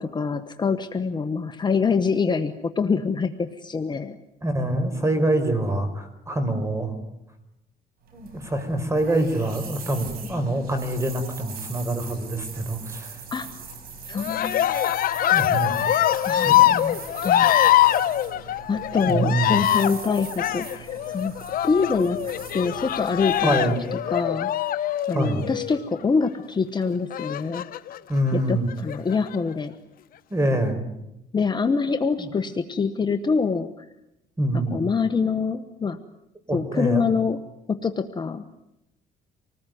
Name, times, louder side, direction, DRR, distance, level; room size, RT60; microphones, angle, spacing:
voice 1, 0.0-4.2 13.3-13.5 14.1-14.7 16.3-17.5 18.7-21.3 21.6-23.6 23.9-24.5 25.1-27.6 28.3-29.7 31.3-33.9 34.7-36.0 36.5-37.4 37.7-38.4, left 5 dB, 25° left, 8 dB, 1.2 m, -25 dB
voice 2, 4.4-6.9 8.1-13.1 15.3-15.9 16.4-16.6 19.1-19.6 23.4-23.8 25.1-25.4 28.1-28.7 30.3-30.8 32.2-32.3 34.4-34.8 36.5-37.0, right 1 dB, 15° right, 9 dB, 4.9 m, -25 dB
sound 1, 8.0-24.2, right 5 dB, 65° right, 5.3 m, -41 dB
Cheering, 14.2-25.9 27.1-28.0 28.7-29.4, left 12 dB, 60° left, 1.2 m, -23 dB
26.5 x 19.5 x 9.3 m, 0.87 s
cardioid pair, 110°, 17 cm